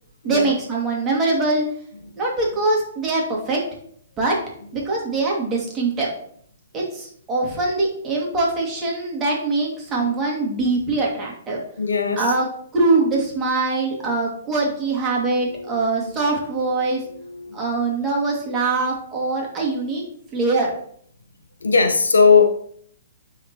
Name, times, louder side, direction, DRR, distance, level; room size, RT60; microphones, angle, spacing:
voice 1, 0.2-1.6 2.2-3.6 4.2-4.4 4.7-6.1 6.7-11.6 12.2-12.5 12.7-17.0 17.5-20.0 20.3-20.7, right 3 dB, 20° right, -3 dB, 2.2 m, -22 dB
voice 2, 11.8-12.3 15.4-15.8 17.0-17.6 21.6-22.4, left 5 dB, 75° left, 6 dB, 0.8 m, -19 dB
9.4 x 3.9 x 3.0 m, 0.62 s
figure-of-eight pair, 120°, 0 cm